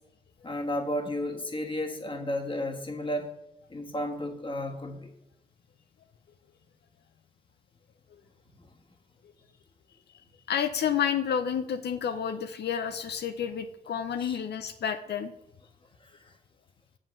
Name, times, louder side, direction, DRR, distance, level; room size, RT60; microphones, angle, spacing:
voice 1, 0.4-3.3 3.7-5.1 14.2-14.4 16.0-16.3, left 1 dB, 30° left, 3 dB, 1.4 m, -33 dB
voice 2, 10.5-15.3, left 8 dB, 90° left, 8 dB, 0.6 m, -30 dB
7.5 x 5.2 x 7.1 m, 0.85 s
cardioid pair, 80°, 17 cm